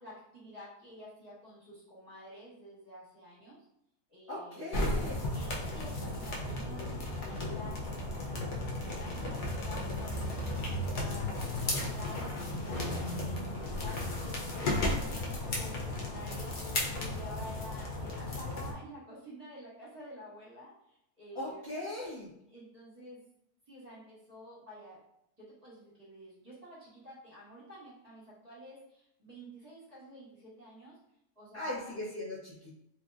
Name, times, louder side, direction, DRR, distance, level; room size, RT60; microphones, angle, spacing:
voice 1, 0.0-3.6 4.1-4.7 5.3-11.5 11.8-12.9 13.2-21.8 22.5-23.2 23.7-25.0 25.4-31.0 31.3-32.0, equal, 25° right, -9 dB, 1.7 m, -50 dB
voice 2, 4.3-5.1 21.3-22.3 31.5-32.7, left 1 dB, 25° left, -12 dB, 0.8 m, -39 dB
sound 1, 4.7-18.7, left 1 dB, 65° left, 0.5 m, -34 dB
3.2 x 2.8 x 2.4 m, 0.77 s
omnidirectional pair, 1.6 m